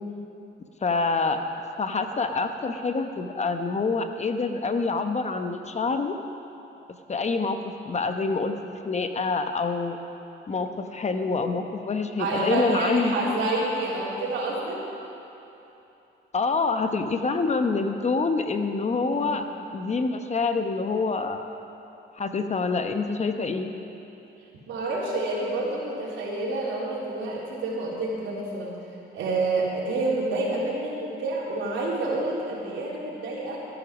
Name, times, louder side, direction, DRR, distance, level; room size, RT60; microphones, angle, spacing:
voice 1, 0.8-1.4 1.8-6.2 7.1-10.0 10.5-13.4 16.3-19.4 19.7-21.5 22.2-23.7, left 4 dB, 35° left, 7 dB, 0.9 m, -26 dB
voice 2, 12.2-14.8 19.1-19.4 24.7-28.7 29.1-33.6, right 2 dB, 80° right, -5 dB, 3.4 m, -28 dB
13.5 x 10.5 x 6.2 m, 3.0 s
cardioid pair, 90°, 20 cm